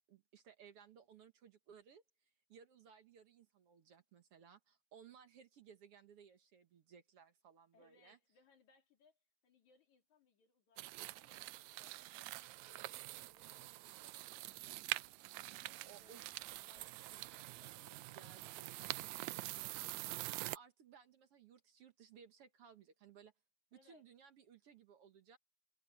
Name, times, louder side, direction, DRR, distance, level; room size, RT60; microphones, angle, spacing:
voice 1, 0.1-8.2 15.9-16.5 18.1-19.1 20.2-23.3 23.7-25.4, right 7 dB, 60° right, 2.0 m, -61 dB
voice 2, 7.7-19.9 23.7-24.0, left 5 dB, 75° left, 4.1 m, -72 dB
sound 1, 10.8-20.6, right 19 dB, 80° right, 1.8 m, -46 dB
omnidirectional pair, 3.4 m